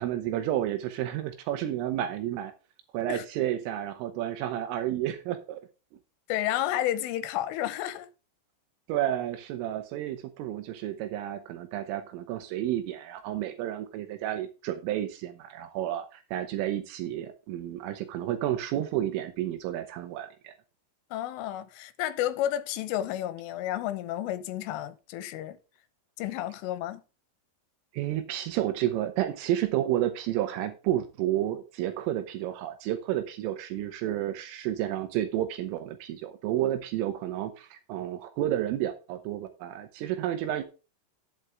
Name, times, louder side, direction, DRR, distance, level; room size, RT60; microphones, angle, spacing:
voice 1, 0.0-2.5 2.9-5.6 8.9-20.5 27.9-40.6, right 12 dB, 80° right, 3.5 m, -31 dB
voice 2, 6.3-8.1 21.1-25.6 26.2-27.0, left 12 dB, 80° left, 3.3 m, -31 dB
10.5 x 8.1 x 3.5 m
omnidirectional pair, 5.9 m